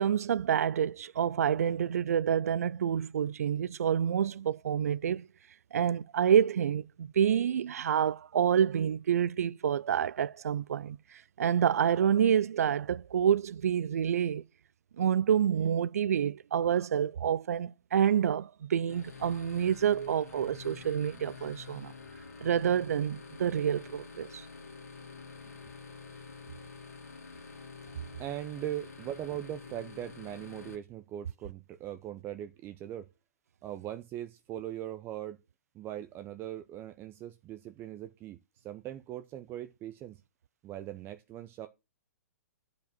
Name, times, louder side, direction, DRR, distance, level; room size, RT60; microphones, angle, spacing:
voice 1, 0.0-5.2 5.7-11.0 11.4-14.4 15.0-21.9 22.4-24.4, right 9 dB, 65° right, 0.5 m, -28 dB
sound 1, 18.9-30.8, left 5 dB, 70° left, 2.6 m, -48 dB
voice 2, 27.9-33.1 33.6-35.4 35.7-40.2 40.6-41.7, right 12 dB, 25° right, 0.8 m, -40 dB
10.5 x 5.3 x 6.0 m
figure-of-eight pair, 120°, 9 cm